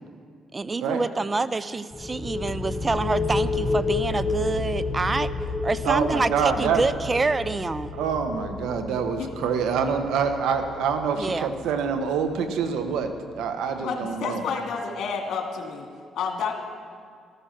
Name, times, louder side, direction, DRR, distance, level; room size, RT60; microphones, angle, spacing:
voice 1, 0.5-5.3 5.6-7.9 11.2-11.5, right 3 dB, 25° right, 15 dB, 0.5 m, -27 dB
sound 1, 1.9-13.4, left 3 dB, 25° left, 1.0 m, -31 dB
voice 2, 5.8-6.9 7.9-14.4, right 6 dB, 90° right, 7 dB, 1.2 m, -26 dB
voice 3, 13.8-15.9 16.1-16.5, left 5 dB, 75° left, 2 dB, 2.2 m, -30 dB
13.5 x 13.0 x 5.9 m, 2.2 s
cardioid pair, 90°, 0 cm